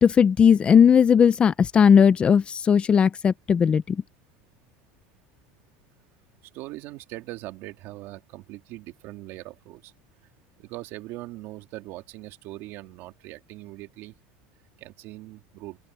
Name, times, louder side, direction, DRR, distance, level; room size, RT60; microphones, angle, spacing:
voice 1, 0.0-4.0, left 7 dB, 25° left, 0.6 m, -17 dB
voice 2, 6.5-9.9 10.6-14.1 14.8-15.8, right 18 dB, 55° right, 2.5 m, -40 dB
open air
supercardioid pair, 140°, 5 cm